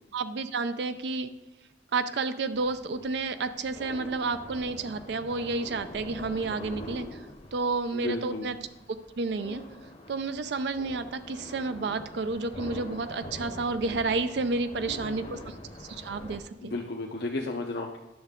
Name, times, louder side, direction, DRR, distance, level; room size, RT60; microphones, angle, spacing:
voice 1, 0.1-1.3 1.9-7.2 7.5-8.6 9.2-9.6 10.1-15.5 15.8-16.7, right 3 dB, 70° right, 10 dB, 0.4 m, -31 dB
sound 1, 2.5-16.4, left 1 dB, 35° left, 0.8 m, -44 dB
voice 2, 7.9-8.5 14.9-15.5 16.6-18.0, left 2 dB, 65° left, 0 dB, 0.6 m, -34 dB
10.5 x 6.4 x 3.6 m, 0.97 s
head